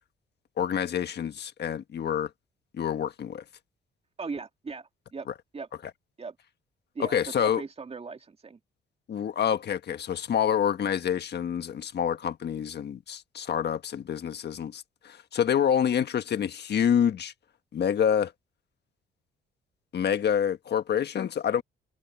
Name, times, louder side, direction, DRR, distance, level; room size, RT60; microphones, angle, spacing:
voice 1, 0.6-2.3 2.8-3.4 7.0-7.6 9.1-17.3 17.7-18.3 19.9-21.6, left 8 dB, 55° left, 1.4 m, -27 dB
voice 2, 4.2-5.3 5.5-5.7 6.2-6.4 6.9-8.6, right 4 dB, 30° right, 2.6 m, -38 dB
cardioid pair, 90°, 20 cm